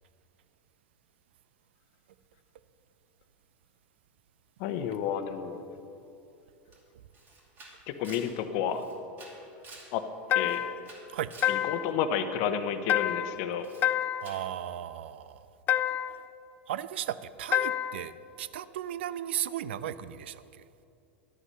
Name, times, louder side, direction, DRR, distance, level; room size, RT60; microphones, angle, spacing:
voice 1, 4.6-5.6 7.9-8.8 9.9-10.0 10.3-10.6 11.5-13.7, left 8 dB, 60° left, 0.8 m, -31 dB
Camera, 6.7-6.8 7.1-10.0 10.3-11.6 13.6-13.9 14.2-14.5, right 3 dB, 35° right, 2.4 m, -51 dB
sound 1, 10.3-10.9 11.4-12.0 12.9-13.4 13.8-14.4 15.7-16.2 17.5-18.1, left 12 dB, 35° left, 0.3 m, -28 dB
voice 2, 14.2-15.5 16.7-20.6, right 11 dB, 85° right, 0.4 m, -36 dB
11.5 x 8.2 x 5.6 m
supercardioid pair, 120°, 6 cm